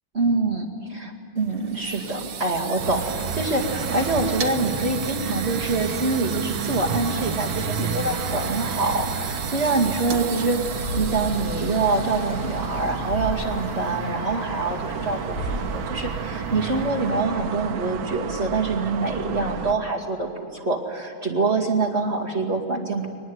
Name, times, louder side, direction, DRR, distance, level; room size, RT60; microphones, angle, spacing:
voice 1, 0.1-23.1, right 3 dB, 30° right, -2 dB, 2.5 m, -25 dB
sound 1, 1.4-14.2, right 5 dB, 85° right, 2.3 m, -34 dB
sound 2, 2.8-19.7, right 7 dB, 70° right, 1.8 m, -31 dB
sound 3, 10.8-17.5, left 2 dB, 30° left, 1.2 m, -35 dB
23.0 x 20.0 x 9.5 m, 2.1 s
omnidirectional pair, 2.4 m